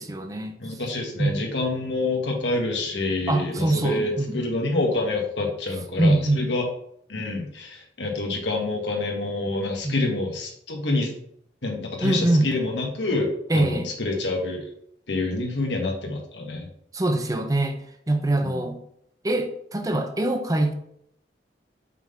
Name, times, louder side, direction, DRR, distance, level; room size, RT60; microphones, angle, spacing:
voice 1, 0.0-0.5 1.2-1.4 3.3-4.5 6.0-6.5 9.8-9.9 12.0-12.5 13.5-13.9 16.9-17.8 18.1-18.8 19.2-20.7, right 1 dB, 20° right, 6 dB, 0.7 m, -23 dB
voice 2, 0.6-6.7 7.1-11.1 11.6-14.7 15.1-16.7 18.4-18.6, left 2 dB, 85° left, 1 dB, 1.6 m, -27 dB
6.0 x 3.8 x 5.6 m, 0.69 s
head